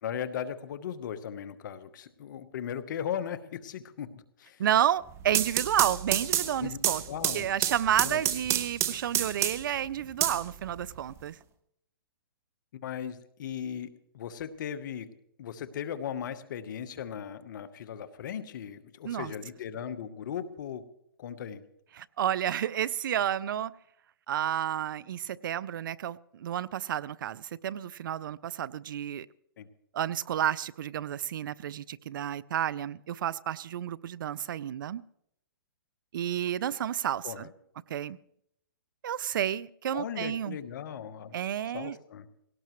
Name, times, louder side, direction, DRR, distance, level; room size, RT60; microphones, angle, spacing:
voice 1, 0.0-4.1 4.4-4.6 6.6-6.8 7.1-7.5 7.9-8.4 12.7-15.1 15.4-20.9 21.2-21.6 29.6-29.7 37.2-37.5 39.9-41.3 41.7-42.3, left 8 dB, 60° left, 12 dB, 1.1 m, -37 dB
voice 2, 4.6-7.0 7.3-11.4 19.0-19.3 21.9-23.7 24.3-29.3 29.9-35.0 36.1-37.5 37.9-38.2 39.0-40.6 41.3-42.0, right 10 dB, 65° right, 21 dB, 0.5 m, -31 dB
sound 1, 5.1-9.8 10.2-11.2, right 11 dB, 20° right, 0.8 m, -29 dB
20.0 x 17.5 x 3.1 m, 0.75 s
hypercardioid pair, 145°, 12 cm